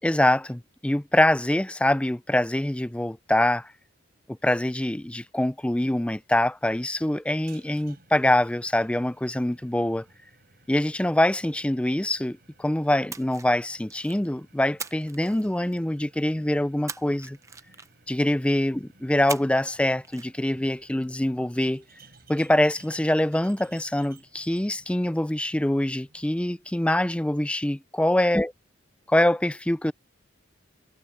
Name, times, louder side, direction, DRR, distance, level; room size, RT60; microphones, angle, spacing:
voice 1, 0.0-3.7 4.4-10.0 10.7-17.4 18.1-21.8 22.3-28.5 29.1-29.9, left 1 dB, 5° left, 0.4 m, -24 dB
sound 1, 7.3-26.7, right 3 dB, 50° right, 5.3 m, -58 dB
Splash splatter, 13.1-14.3 14.8-16.0 16.9-18.2 19.3-19.8 20.0-20.3, right 5 dB, 15° right, 0.7 m, -40 dB
head